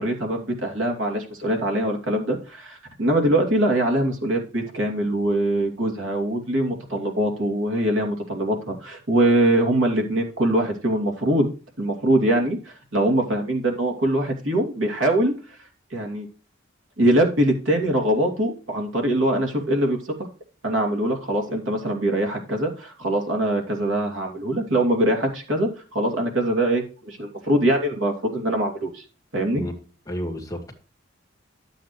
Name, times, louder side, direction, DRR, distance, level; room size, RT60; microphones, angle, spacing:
voice 1, 0.0-11.5 11.8-15.6 15.9-16.2 17.0-20.2 20.6-29.0 29.3-29.6, right 1 dB, 75° right, 2.8 m, -23 dB
voice 2, 30.1-30.7, equal, 20° left, 1.9 m, -31 dB
12.0 x 8.1 x 3.2 m
head